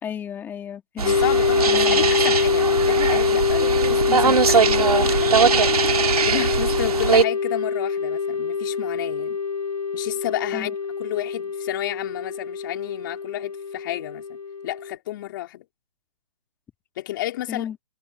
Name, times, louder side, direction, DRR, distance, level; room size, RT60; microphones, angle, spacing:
voice 1, 0.0-1.2 1.7-2.1 10.5-10.7 17.5-17.8, left 8 dB, 10° left, 3.5 m, -34 dB
sound 1, 1.0-14.9, left 5 dB, 70° left, 3.2 m, -24 dB
voice 2, 1.0-5.3 6.2-9.4 9.9-10.7 11.0-14.4 14.6-15.6 17.0-17.7, left 15 dB, 35° left, 4.1 m, -31 dB
sound 2, 1.0-7.2, right 6 dB, 85° right, 2.4 m, -21 dB
hypercardioid pair, 160°, 19 cm